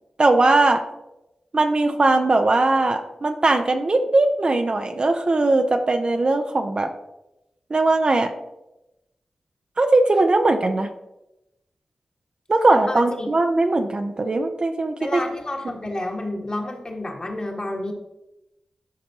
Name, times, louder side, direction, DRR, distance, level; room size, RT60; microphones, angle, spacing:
voice 1, 0.2-0.8 1.5-6.9 7.7-8.3 9.8-10.9 12.5-15.2, right 2 dB, 50° right, 6 dB, 0.7 m, -19 dB
voice 2, 12.9-13.3 15.0-17.9, left 1 dB, 40° left, 0 dB, 1.7 m, -30 dB
11.5 x 5.2 x 2.9 m, 0.92 s
cardioid pair, 50°, 2 cm